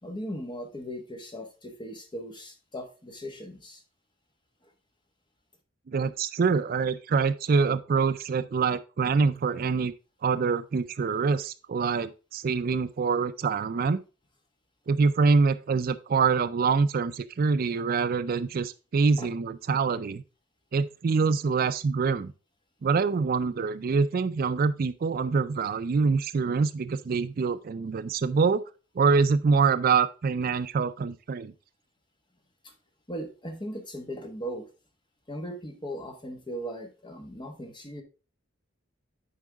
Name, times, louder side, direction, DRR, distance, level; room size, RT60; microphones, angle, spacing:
voice 1, 0.0-3.8 4.6-4.7 19.2-19.3 32.6-32.7 33.1-34.7 35.3-38.0, equal, 25° left, 1.3 m, -38 dB
voice 2, 5.9-9.9 10.2-14.0 14.9-20.2 20.7-22.3 22.8-28.6 29.0-31.5, right 5 dB, 50° right, 0.4 m, -25 dB
9.9 x 4.6 x 3.5 m
head